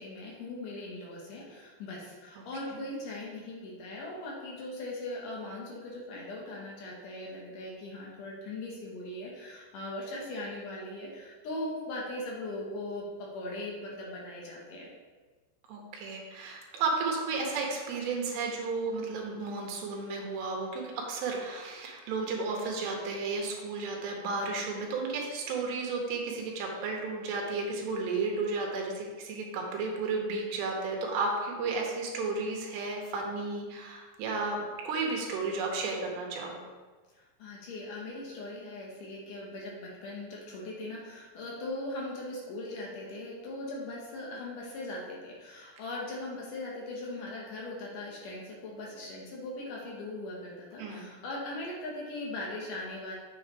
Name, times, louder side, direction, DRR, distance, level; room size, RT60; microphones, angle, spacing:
voice 1, 0.0-14.9 37.1-53.1, left 1 dB, 70° left, -3 dB, 2.1 m, -39 dB
voice 2, 15.7-36.6 50.8-51.1, right 3 dB, 80° right, 0 dB, 3.1 m, -33 dB
7.3 x 7.2 x 3.1 m, 1.4 s
omnidirectional pair, 5.0 m